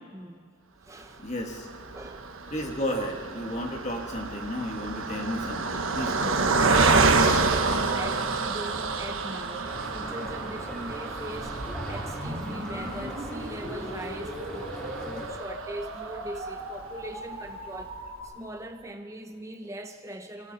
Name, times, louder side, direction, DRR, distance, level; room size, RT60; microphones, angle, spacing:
voice 1, 0.1-0.5 0.8-1.3 1.9-2.4 5.7-6.1 6.4-14.7 15.0-17.9 18.2-20.5, right 1 dB, 15° right, 5 dB, 0.8 m, -40 dB
voice 2, 1.2-1.7 2.5-6.6, equal, 30° left, 2 dB, 1.7 m, -33 dB
Car passing by, 1.5-16.9 17.5-17.6 17.8-18.0, right 4 dB, 65° right, 1.3 m, -28 dB
sound 1, 9.6-15.3, equal, 5° left, 3.1 m, -40 dB
sound 2, 11.4-18.2, equal, 30° right, 7.6 m, -39 dB
29.5 x 21.5 x 4.2 m, 2.1 s
head